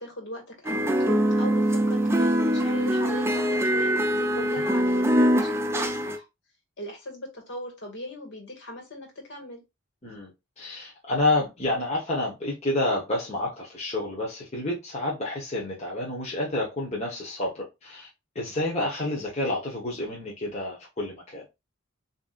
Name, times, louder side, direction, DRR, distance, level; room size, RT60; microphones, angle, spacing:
voice 1, 0.0-6.2 6.8-9.6, left 1 dB, 55° left, 2.1 m, -39 dB
sound 1, 0.6-6.2, equal, 10° right, 0.5 m, -23 dB
voice 2, 10.6-18.1 18.3-21.4, left 2 dB, 30° left, 1.2 m, -29 dB
6.8 x 2.8 x 2.5 m
head